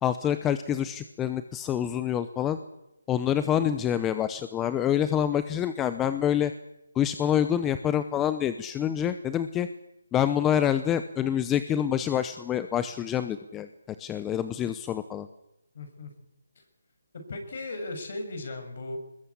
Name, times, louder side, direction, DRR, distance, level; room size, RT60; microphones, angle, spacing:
voice 1, 0.0-2.6 3.1-6.5 6.9-9.7 10.1-13.7 14.0-15.3, left 10 dB, 10° left, 11 dB, 0.8 m, -26 dB
voice 2, 15.7-16.1 17.1-19.0, left 2 dB, 45° left, 6 dB, 6.6 m, -36 dB
21.5 x 21.5 x 8.5 m, 0.88 s
hypercardioid pair, 165°, 0 cm